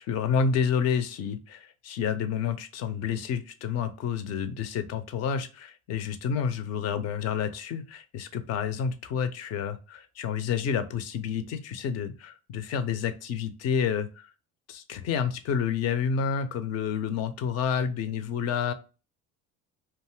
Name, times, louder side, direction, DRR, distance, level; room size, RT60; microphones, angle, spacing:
voice 1, 0.0-14.3 14.7-18.7, left 7 dB, 35° left, 11 dB, 0.4 m, -29 dB
2.5 x 2.3 x 3.0 m, 0.33 s
figure-of-eight pair, 60°, 45 cm